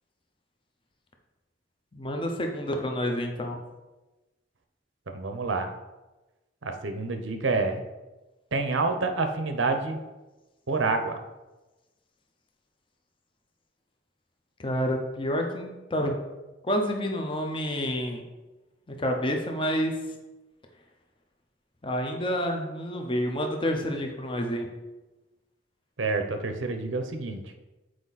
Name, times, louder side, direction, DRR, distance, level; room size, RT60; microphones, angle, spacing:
voice 1, 1.9-3.6 14.6-16.1 16.6-18.2 19.0-20.0 21.8-24.7, equal, 25° left, 3 dB, 0.8 m, -28 dB
voice 2, 5.1-5.7 6.6-7.8 8.5-10.0 10.7-11.2 26.0-27.4, right 3 dB, 85° right, 6 dB, 0.8 m, -28 dB
7.8 x 4.8 x 4.1 m, 1.1 s
head